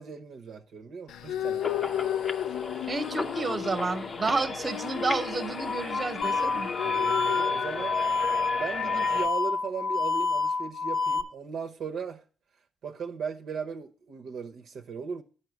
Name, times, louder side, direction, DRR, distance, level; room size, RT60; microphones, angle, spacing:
voice 1, 0.0-2.1 6.8-8.0 8.6-12.2 12.8-15.2, right 6 dB, 65° right, 0.8 m, -37 dB
sound 1, 1.1-9.3, left 10 dB, 85° left, 0.5 m, -35 dB
sound 2, 1.6-9.3, left 4 dB, 35° left, 0.7 m, -35 dB
voice 2, 2.9-6.7, right 3 dB, 30° right, 1.0 m, -30 dB
sound 3, 6.2-11.2, left 4 dB, 65° left, 1.0 m, -28 dB
7.9 x 5.7 x 7.1 m
cardioid pair, 90°, 0 cm